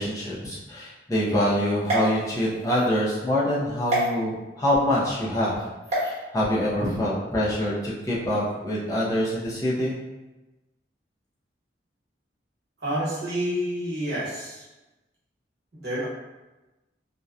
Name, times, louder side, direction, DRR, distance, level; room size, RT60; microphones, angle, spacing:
voice 1, 0.0-5.6 6.0-10.0, equal, 20° left, -7 dB, 0.6 m, -25 dB
sound 1, 1.8-2.9 3.9-4.1 5.8-6.1, right 1 dB, 40° right, 0.8 m, -27 dB
voice 2, 12.8-14.7 15.8-16.1, equal, 75° right, -8 dB, 1.1 m, -28 dB
2.7 x 2.2 x 2.4 m, 1.1 s
head